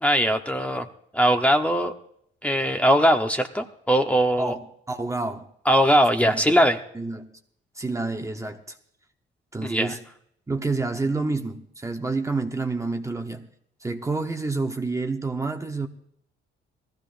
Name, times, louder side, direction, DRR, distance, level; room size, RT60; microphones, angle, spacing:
voice 1, 0.0-0.9 1.1-1.9 2.4-4.5 5.7-6.8 9.6-9.9, equal, 5° left, 1.1 m, -20 dB
voice 2, 4.4-5.5 6.2-6.5 6.9-7.3 7.7-8.8 9.5-10.0 10.5-13.5 13.8-15.9, right 3 dB, 15° right, 1.0 m, -29 dB
19.5 x 14.5 x 2.6 m
cardioid pair, 90°, 20 cm